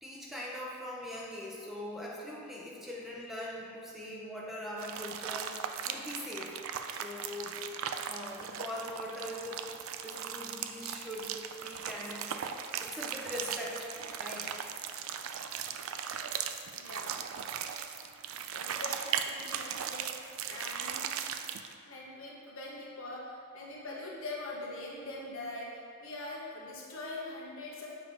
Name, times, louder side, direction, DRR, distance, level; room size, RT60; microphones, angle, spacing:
voice 1, 0.0-6.6 6.9-7.6 8.0-9.6 10.0-12.4 12.8-13.9 14.2-14.6, left 1 dB, ahead, -5 dB, 0.7 m, -41 dB
sound 1, 4.8-21.7, right 8 dB, 75° right, 0.4 m, -38 dB
voice 2, 16.7-17.1 18.5-20.1 20.5-21.1 21.8-27.9, left 2 dB, 70° left, -4 dB, 1.3 m, -42 dB
7.3 x 3.5 x 4.9 m, 2.3 s
head